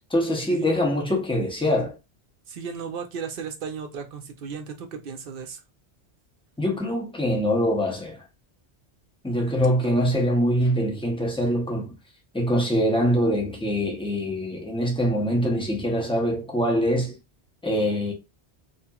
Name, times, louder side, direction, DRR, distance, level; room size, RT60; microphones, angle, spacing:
voice 1, 0.1-2.0 6.6-8.2 9.2-11.9 12.3-17.1 17.6-18.1, equal, 5° left, 0.5 m, -24 dB
voice 2, 2.5-5.6 9.3-9.5, right 6 dB, 60° right, 0.7 m, -35 dB
2.8 x 2.4 x 2.2 m
omnidirectional pair, 1.1 m